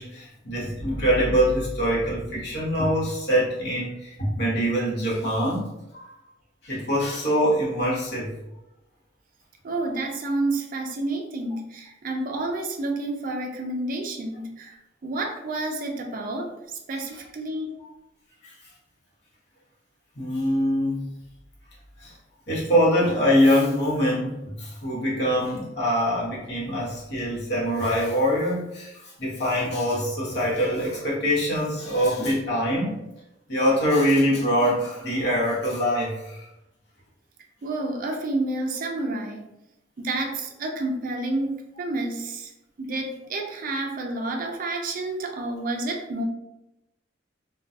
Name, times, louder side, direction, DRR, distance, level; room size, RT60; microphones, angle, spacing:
voice 1, 0.0-5.7 5.9-6.1 6.6-8.3 17.8-17.9 18.4-18.5 20.2-21.0 22.0-22.1 22.5-28.9 29.2-32.9 33.5-36.4, equal, 65° left, -6 dB, 1.0 m, -24 dB
voice 2, 9.6-16.5 16.9-17.7 37.6-39.5 40.0-42.5 42.8-46.2, right 2 dB, 50° right, 3 dB, 0.4 m, -29 dB
2.2 x 2.2 x 2.6 m, 0.90 s
head